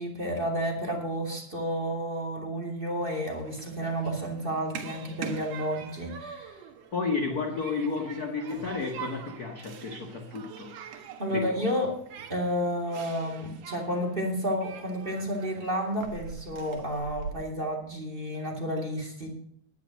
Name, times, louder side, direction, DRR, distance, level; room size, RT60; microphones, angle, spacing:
voice 1, 0.0-6.6 11.2-11.9 12.3-19.3, equal, 15° right, 1 dB, 2.5 m, -31 dB
Human group actions, 3.0-17.3, right 7 dB, 75° right, 2.9 m, -44 dB
voice 2, 6.9-10.8 11.3-11.7, left 4 dB, 50° left, 4 dB, 1.1 m, -32 dB
11.5 x 9.4 x 6.4 m, 0.65 s
omnidirectional pair, 3.7 m